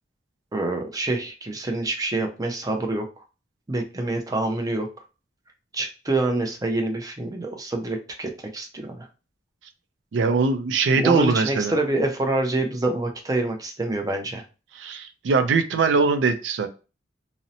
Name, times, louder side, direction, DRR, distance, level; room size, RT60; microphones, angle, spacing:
voice 1, 0.5-3.2 3.7-4.9 5.7-9.1 10.9-14.4, right 2 dB, 20° right, 4 dB, 0.5 m, -26 dB
voice 2, 10.1-11.7 14.8-16.7, right 4 dB, 85° right, 9 dB, 0.4 m, -21 dB
2.7 x 2.0 x 2.6 m, 0.32 s
head